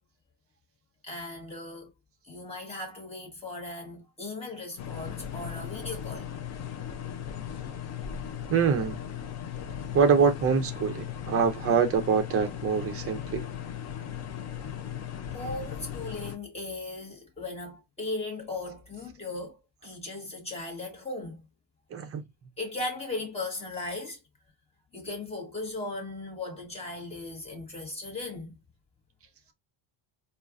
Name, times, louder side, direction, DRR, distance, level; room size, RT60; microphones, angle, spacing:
voice 1, 1.0-1.9 2.2-6.3 15.3-21.4 22.6-24.2 24.9-28.6, left 2 dB, 15° left, 1.3 m, -37 dB
sound 1, 4.8-16.4, left 9 dB, 35° left, 0.5 m, -37 dB
voice 2, 8.5-9.0 9.9-13.4 21.9-22.2, right 6 dB, 30° right, 0.5 m, -24 dB
4.3 x 2.4 x 2.5 m
cardioid pair, 180°, 48 cm